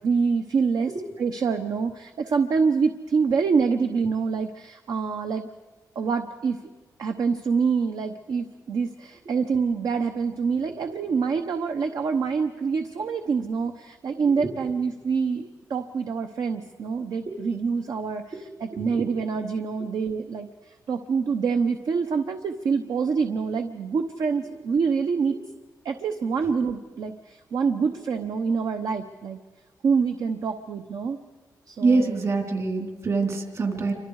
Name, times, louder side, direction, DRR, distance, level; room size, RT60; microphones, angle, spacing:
voice 1, 0.0-5.5 5.9-6.6 7.0-25.4 25.8-29.4 29.8-31.2 31.7-32.1, right 5 dB, 65° right, 6 dB, 0.9 m, -26 dB
voice 2, 31.8-33.9, right 3 dB, 45° right, 4 dB, 3.2 m, -24 dB
28.5 x 25.0 x 4.8 m, 1.2 s
wide cardioid pair, 165°, 7 cm